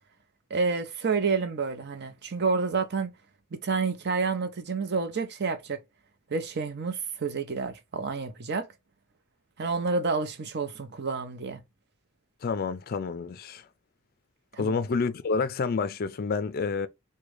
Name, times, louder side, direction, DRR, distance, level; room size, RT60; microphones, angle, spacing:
voice 1, 0.5-3.1 3.5-5.8 6.3-8.7 9.6-11.6 14.5-14.7, right 4 dB, 50° right, 0.6 m, -29 dB
voice 2, 12.4-13.7 14.6-16.9, left 4 dB, 45° left, 0.4 m, -29 dB
3.6 x 2.2 x 3.2 m
head